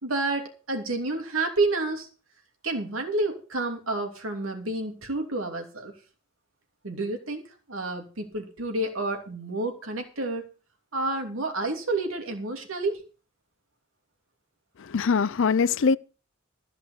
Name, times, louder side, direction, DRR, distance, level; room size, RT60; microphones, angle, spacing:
voice 1, 0.0-2.1 2.6-5.9 6.8-7.4 7.7-10.5 10.9-13.0, right 2 dB, 85° right, 3.0 m, -29 dB
voice 2, 14.8-16.0, left 5 dB, 65° left, 0.5 m, -22 dB
14.0 x 5.7 x 8.0 m
head